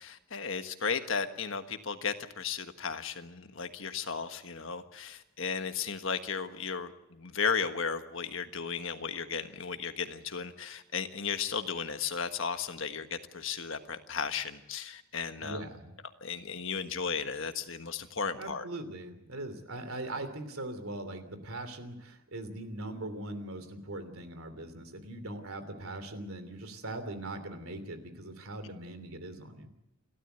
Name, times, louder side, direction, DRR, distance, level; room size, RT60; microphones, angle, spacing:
voice 1, 0.0-15.6 16.2-18.6, left 6 dB, 60° left, 8 dB, 1.4 m, -35 dB
voice 2, 15.4-15.9 18.4-29.7, right 2 dB, 75° right, 9 dB, 3.1 m, -41 dB
29.5 x 13.0 x 8.1 m, 0.92 s
head